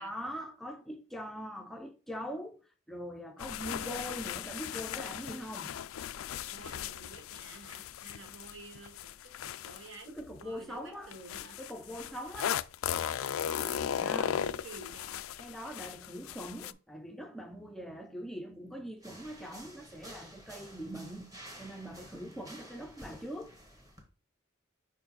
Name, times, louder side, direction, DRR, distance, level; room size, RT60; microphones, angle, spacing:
voice 1, 0.0-5.8 10.1-11.1 11.6-12.6 14.0-14.5 15.4-21.3 21.6-23.6, equal, ahead, 0.5 m, -42 dB
sound 1, 3.4-10.4 11.1-16.7, left 9 dB, 85° left, 0.3 m, -37 dB
voice 2, 6.4-11.6 13.4-13.7 14.4-15.2, right 3 dB, 65° right, 1.4 m, -51 dB
sound 2, 19.0-24.0, equal, 15° right, 1.4 m, -51 dB
5.3 x 4.6 x 4.0 m
head